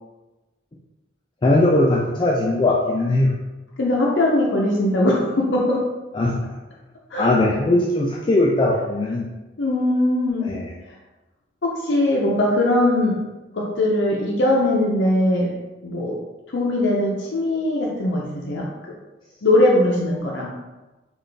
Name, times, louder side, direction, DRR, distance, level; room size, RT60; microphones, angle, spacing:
voice 1, 1.4-3.3 6.1-6.5 7.2-9.3 10.4-10.7, left 2 dB, 25° left, -2 dB, 0.3 m, -19 dB
voice 2, 3.8-5.8 7.1-7.3 9.6-10.5 11.6-13.2 13.5-15.5 15.8-16.2 16.5-19.0 19.4-20.5, left 1 dB, 70° left, -3 dB, 0.6 m, -20 dB
3.9 x 2.4 x 3.3 m, 1.1 s
head